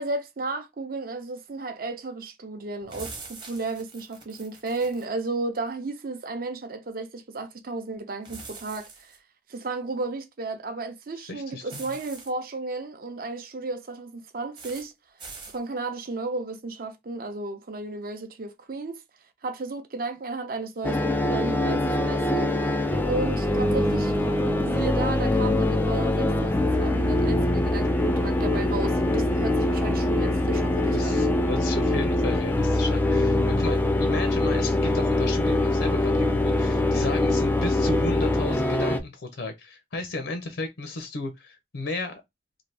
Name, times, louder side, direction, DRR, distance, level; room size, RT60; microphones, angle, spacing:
voice 1, 0.0-9.2 9.5-14.9 15.5-19.0 19.4-22.5 23.0-24.1 24.4-31.2, right 3 dB, 55° right, 0.6 m, -33 dB
sound 1, 2.9-5.1 8.2-9.2 11.7-12.3 14.6-14.9 15.2-15.6, right 4 dB, 25° right, 0.9 m, -43 dB
voice 2, 11.3-11.9 30.9-42.2, left 2 dB, 75° left, 0.6 m, -34 dB
sound 2, 20.8-39.0, left 1 dB, 10° left, 0.3 m, -23 dB
2.7 x 2.5 x 3.3 m
head